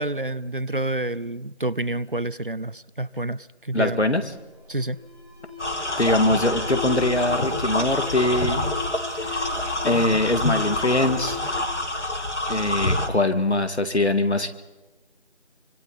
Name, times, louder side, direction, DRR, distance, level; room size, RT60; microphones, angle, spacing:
voice 1, 0.0-4.0 4.7-5.0, right 2 dB, 50° right, 20 dB, 0.6 m, -28 dB
voice 2, 3.7-4.2 6.0-8.6 9.2-9.5 9.8-11.4 12.5-14.5, left 1 dB, 75° left, 9 dB, 2.3 m, -22 dB
Alarm, 4.1-12.7, left 5 dB, 10° left, 5.8 m, -37 dB
sound 1, 5.6-13.1, left 1 dB, 90° left, 2.5 m, -27 dB
27.0 x 25.0 x 4.2 m, 1.2 s
figure-of-eight pair, 175°, 34 cm